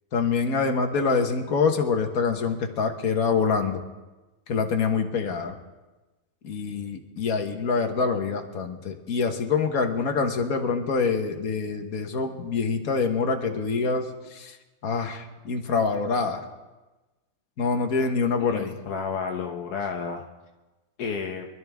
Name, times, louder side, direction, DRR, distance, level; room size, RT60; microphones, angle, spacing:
voice 1, 0.1-3.8 4.5-5.6 6.4-14.6 14.8-16.5 17.6-18.7, left 5 dB, 70° left, 4 dB, 1.8 m, -25 dB
voice 2, 18.4-20.3 21.0-21.5, left 5 dB, 85° left, 2 dB, 1.5 m, -31 dB
24.5 x 12.5 x 3.6 m, 1.1 s
omnidirectional pair, 1.6 m